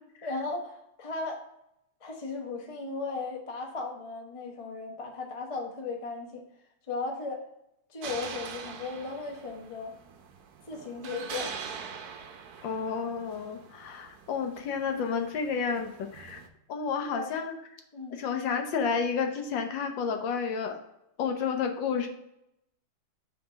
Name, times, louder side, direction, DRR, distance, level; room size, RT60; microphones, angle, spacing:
voice 1, 0.2-1.4 2.0-6.4 6.9-7.5 7.9-9.9 10.7-11.6 17.0-17.3 17.9-18.2, left 3 dB, 35° left, 1 dB, 0.5 m, -36 dB
sound 1, 8.0-16.5, right 6 dB, 65° right, 1.0 m, -43 dB
voice 2, 12.6-16.4 16.7-17.5 18.1-20.8 21.2-22.1, left 6 dB, 70° left, 5 dB, 1.4 m, -31 dB
5.8 x 3.9 x 5.0 m, 0.82 s
omnidirectional pair, 2.2 m